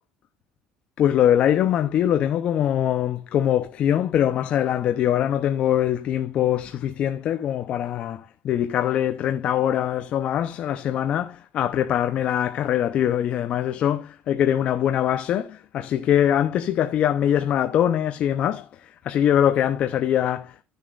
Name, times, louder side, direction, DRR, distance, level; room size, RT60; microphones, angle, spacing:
voice 1, 1.0-20.6, left 10 dB, 45° left, 0.7 m, -23 dB
14.0 x 6.8 x 2.5 m
cardioid pair, 140°, 3 cm